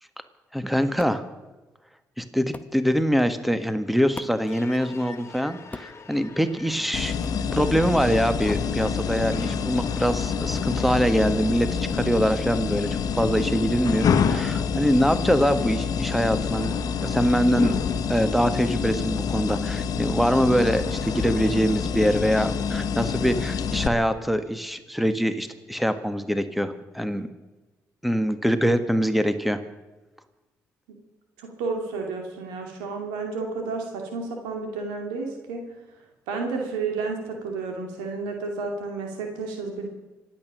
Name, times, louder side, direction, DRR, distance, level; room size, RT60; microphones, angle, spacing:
voice 1, 0.5-1.2 2.2-7.2 7.5-17.7 18.1-27.3 28.0-29.6, equal, ahead, 10 dB, 1.6 m, -24 dB
sound 1, 1.0-1.2 2.5-2.8 4.1-4.5 5.7-6.0 7.2-7.4, left 2 dB, 20° left, 0.9 m, -39 dB
sound 2, 4.4-23.4, left 4 dB, 40° left, 1.9 m, -46 dB
sound 3, 6.9-23.9, left 6 dB, 65° left, 1.2 m, -27 dB
voice 2, 31.4-35.7 36.3-39.9, right 4 dB, 90° right, 3 dB, 2.6 m, -31 dB
26.0 x 8.9 x 6.3 m, 1.2 s
supercardioid pair, 50°, 7 cm